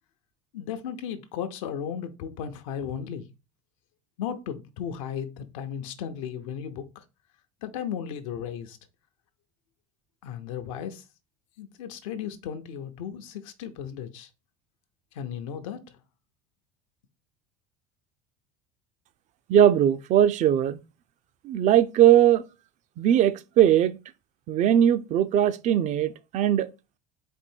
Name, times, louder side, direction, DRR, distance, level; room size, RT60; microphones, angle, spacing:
voice 1, 0.5-3.3 4.2-7.0 7.6-8.8 10.2-11.0 11.6-14.3 15.1-16.0, left 8 dB, 85° left, 0.7 m, -35 dB
voice 2, 19.5-20.8 21.4-22.4 23.0-24.0 24.5-26.7, right 10 dB, 45° right, 0.5 m, -20 dB
4.4 x 2.7 x 4.4 m
supercardioid pair, 100°, 16 cm